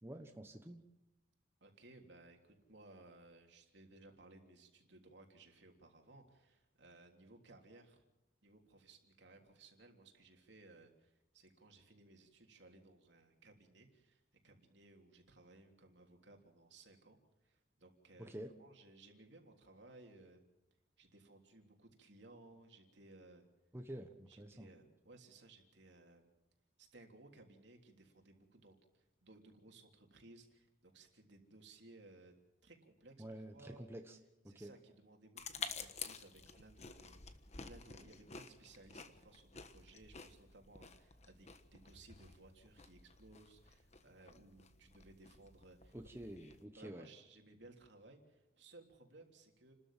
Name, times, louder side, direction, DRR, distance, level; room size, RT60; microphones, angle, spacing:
voice 1, 0.0-0.8 18.2-18.5 23.7-24.7 33.2-34.2 34.4-34.7 45.9-47.1, right 1 dB, 15° right, 4 dB, 1.2 m, -49 dB
voice 2, 1.6-8.0 8.4-20.4 21.0-23.4 24.3-26.3 26.8-32.3 32.6-33.8 34.5-37.1 37.6-46.0 46.8-49.7, right 2 dB, 65° right, 3 dB, 3.4 m, -61 dB
sound 1, 35.4-46.6, left 5 dB, 40° left, 1.3 m, -51 dB
30.0 x 13.5 x 7.5 m, 0.95 s
head